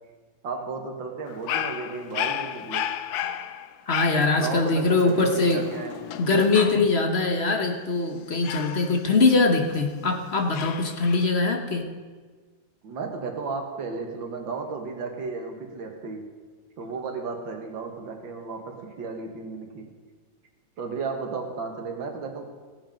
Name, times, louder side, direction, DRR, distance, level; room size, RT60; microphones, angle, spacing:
voice 1, 0.4-2.9 4.4-6.1 12.8-16.3 16.8-19.9 20.8-22.5, right 4 dB, 75° right, 3 dB, 2.2 m, -34 dB
Dog, 1.3-7.1 8.4-9.9 10.5-11.2, left 10 dB, 70° left, 1.0 m, -33 dB
voice 2, 3.9-5.6 6.2-11.9, left 3 dB, 40° left, 4 dB, 1.1 m, -22 dB
17.5 x 7.6 x 5.2 m, 1.4 s
omnidirectional pair, 2.1 m